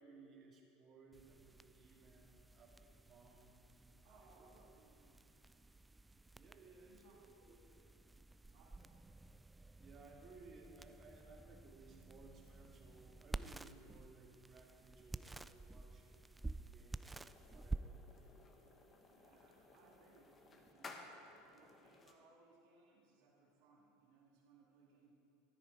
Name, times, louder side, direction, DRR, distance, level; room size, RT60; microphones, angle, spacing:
voice 1, 0.0-4.7 6.3-7.6 9.8-18.5, right 3 dB, 40° right, 1 dB, 2.0 m, -62 dB
sound 1, 1.1-20.7, right 2 dB, 10° right, 0.3 m, -52 dB
voice 2, 4.0-5.2 6.9-7.2 7.5-7.9 8.5-9.0 19.1-25.1, right 4 dB, 55° right, -3 dB, 2.4 m, -68 dB
sound 2, 17.0-22.1, left 3 dB, 30° left, 1.3 m, -58 dB
13.0 x 10.0 x 4.7 m, 2.9 s
figure-of-eight pair, 80°, 0 cm